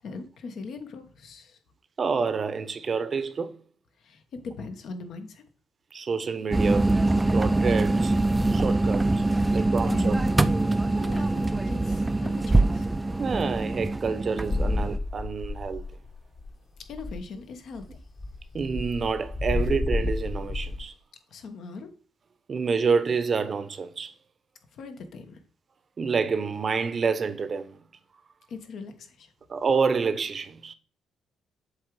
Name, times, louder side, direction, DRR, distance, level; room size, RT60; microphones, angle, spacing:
voice 1, 0.0-1.6 4.0-5.4 9.4-10.4 11.0-12.9 16.9-18.0 21.3-21.9 24.7-25.4 28.5-29.3, left 3 dB, 65° left, 1.2 m, -40 dB
voice 2, 2.0-3.5 5.9-6.9 7.3-8.2 8.5-9.2 9.5-10.2 13.2-15.8 18.5-20.9 22.5-24.1 26.0-27.8 29.5-30.7, right 5 dB, 45° right, 0.8 m, -28 dB
sound 1, 6.5-15.0, right 2 dB, 15° right, 0.4 m, -24 dB
sound 2, 14.5-16.1 16.4-16.5 16.8-17.3 17.8-20.8, left 2 dB, 40° left, 1.4 m, -30 dB
7.6 x 3.5 x 4.8 m
cardioid pair, 90°, 0 cm